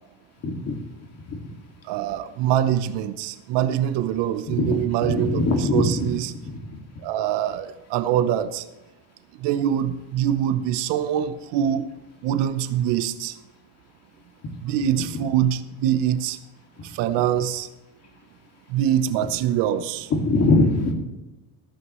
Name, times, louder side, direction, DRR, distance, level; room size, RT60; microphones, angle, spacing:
voice 1, 0.4-0.8 1.3-1.4 4.4-5.8 6.4-6.6 14.9-15.0 20.1-20.9, left 2 dB, 40° left, 2.3 m, -22 dB
voice 2, 1.9-6.3 7.0-8.6 9.4-11.9 12.2-13.4 14.6-16.4 16.8-17.7 18.7-20.1, right 10 dB, 90° right, 1.0 m, -24 dB
14.5 x 14.5 x 3.2 m
cardioid pair, 170°, 41 cm